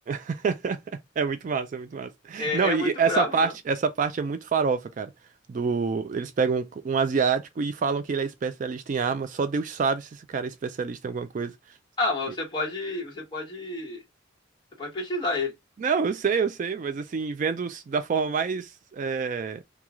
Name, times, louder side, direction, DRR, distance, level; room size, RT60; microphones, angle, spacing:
voice 1, 0.1-5.1 5.5-11.5 15.8-19.6, right 5 dB, 40° right, 0.3 m, -27 dB
voice 2, 2.4-3.5 12.0-14.0 14.8-15.5, left 2 dB, 25° left, 1.3 m, -29 dB
3.0 x 2.3 x 3.5 m
head